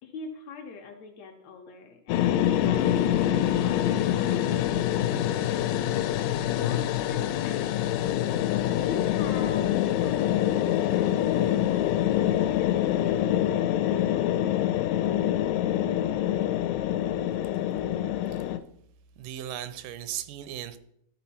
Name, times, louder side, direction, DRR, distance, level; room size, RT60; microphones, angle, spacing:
voice 1, 0.0-5.8 6.5-8.1 8.7-14.4, left 5 dB, 70° left, 3 dB, 1.7 m, -43 dB
sound 1, 2.1-18.6, left 11 dB, 90° left, 2.2 m, -25 dB
voice 2, 19.2-20.8, right 11 dB, 85° right, 13 dB, 2.1 m, -37 dB
12.5 x 4.3 x 4.2 m, 0.73 s
omnidirectional pair, 3.7 m